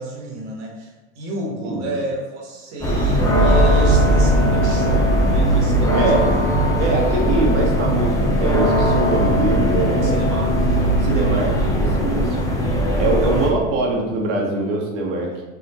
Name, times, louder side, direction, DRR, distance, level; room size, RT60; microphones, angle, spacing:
voice 1, 0.0-6.4 10.0-10.8 12.3-12.8, right 1 dB, 70° right, -1 dB, 1.4 m, -31 dB
sound 1, 2.8-13.5, equal, 10° left, 0.5 m, -18 dB
voice 2, 5.9-6.4 6.8-10.2 11.0-12.4 13.0-15.4, right 2 dB, 85° right, -1 dB, 1.3 m, -23 dB
4.2 x 3.6 x 2.9 m, 1.2 s
supercardioid pair, 145°, 35 cm